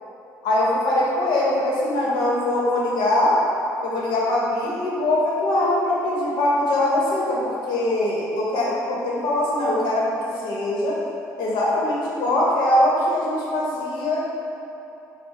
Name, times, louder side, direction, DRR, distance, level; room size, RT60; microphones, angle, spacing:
voice 1, 0.4-3.4 3.8-10.1 10.4-11.0 11.4-14.3, left 1 dB, 75° left, -5 dB, 1.0 m, -22 dB
4.5 x 2.2 x 4.4 m, 2.9 s
supercardioid pair, 80°, 7 cm